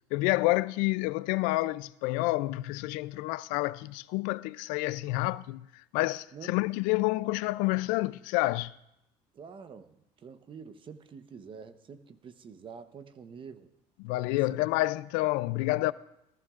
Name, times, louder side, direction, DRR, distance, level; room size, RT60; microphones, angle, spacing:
voice 1, 0.1-8.7 14.0-15.9, left 20 dB, 85° left, 0.4 m, -29 dB
voice 2, 9.3-13.7 14.3-14.6, right 6 dB, 40° right, 0.9 m, -47 dB
18.5 x 14.5 x 2.5 m
cardioid pair, 105°, 13 cm